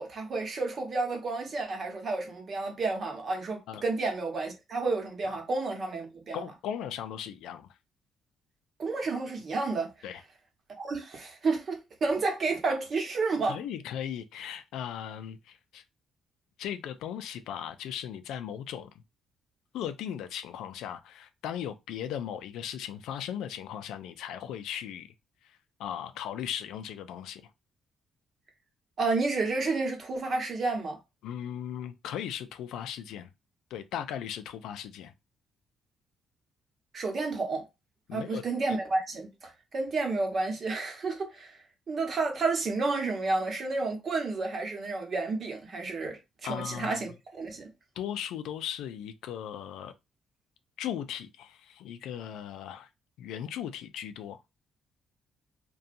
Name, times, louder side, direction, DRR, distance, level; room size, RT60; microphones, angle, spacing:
voice 1, 0.0-6.4 8.8-9.9 10.8-13.6 29.0-31.0 36.9-37.6 38.1-41.6 41.9-46.2 46.5-47.7, right 3 dB, 50° right, 0.9 m, -31 dB
voice 2, 6.3-7.7 10.0-10.2 13.5-15.8 16.6-18.9 19.7-25.1 25.8-27.4 31.2-33.3 33.7-35.1 38.1-38.4 46.4-47.0 48.0-49.9 50.8-52.9 53.2-54.4, left 9 dB, 85° left, 0.3 m, -37 dB
2.7 x 2.2 x 2.5 m
cardioid pair, 90°, 0 cm